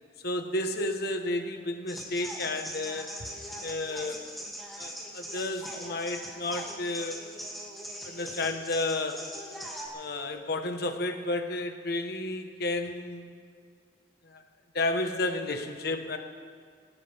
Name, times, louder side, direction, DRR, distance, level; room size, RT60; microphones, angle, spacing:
voice 1, 0.2-3.2 3.6-4.3 4.8-7.3 8.0-9.3 9.9-13.3 14.3-14.4 14.7-16.2, left 2 dB, 60° left, 5 dB, 1.3 m, -32 dB
sound 1, 1.9-9.9, equal, ahead, 2.5 m, -41 dB
19.5 x 19.5 x 3.6 m, 2.1 s
head